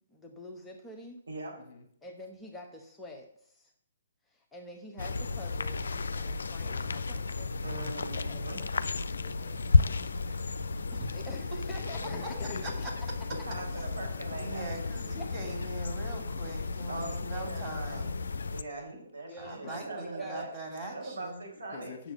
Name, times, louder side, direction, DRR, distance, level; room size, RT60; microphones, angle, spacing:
voice 1, 0.1-1.2 2.0-3.7 4.3-8.7 11.1-12.3 12.6-12.7 15.2-15.3 19.3-20.6, left 1 dB, 5° left, -1 dB, 1.1 m, -47 dB
sound 1, 5.0-18.6, left 4 dB, 65° left, 0.5 m, -32 dB
voice 2, 7.6-8.6 13.5-14.6 16.9-18.1 18.4-20.5 20.9-21.9, right 2 dB, 70° right, -2 dB, 4.6 m, -41 dB
voice 3, 9.1-10.1 12.0-12.9 19.6-19.8 21.5-22.1, left 6 dB, 40° left, 5 dB, 1.5 m, -45 dB
sound 2, 9.1-15.8, right 3 dB, 40° right, 2.4 m, -56 dB
voice 4, 14.4-18.2 19.4-21.5, right 2 dB, 20° right, 0 dB, 2.8 m, -41 dB
7.3 x 6.6 x 7.8 m, 0.67 s
figure-of-eight pair, 130°, 0 cm